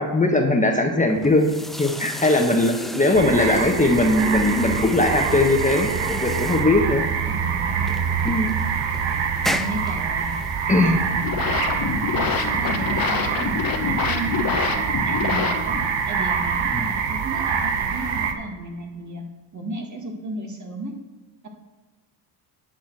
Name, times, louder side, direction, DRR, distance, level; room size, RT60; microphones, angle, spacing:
voice 1, 0.0-1.5 1.8-7.0 8.2-8.6 10.7-11.0 16.7-16.9, left 2 dB, 15° left, 2 dB, 1.3 m, -20 dB
sound 1, 1.1-13.5, equal, ahead, 0.5 m, -34 dB
sound 2, 3.1-18.3, right 6 dB, 70° right, 1.2 m, -25 dB
voice 2, 7.3-8.0 9.5-10.4 10.8-11.7 12.1-15.8 16.0-19.2 19.5-21.0 21.4-21.5, right 2 dB, 40° right, 1 dB, 1.9 m, -33 dB
sound 3, 11.0-16.0, left 6 dB, 50° left, 1.2 m, -26 dB
10.5 x 4.3 x 7.7 m, 1.3 s
cardioid pair, 90°, 46 cm